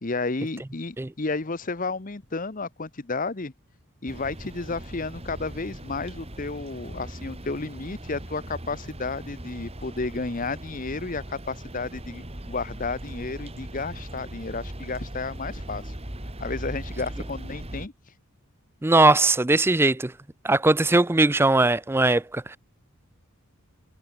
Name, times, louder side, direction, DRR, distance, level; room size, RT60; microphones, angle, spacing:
voice 1, 0.0-3.5 4.0-15.9 16.4-17.9, left 3 dB, 35° left, 0.9 m, -32 dB
sound 1, 4.1-17.9, right 1 dB, 25° right, 2.5 m, -39 dB
voice 2, 18.8-20.1 20.4-22.6, right 2 dB, 10° right, 0.4 m, -20 dB
head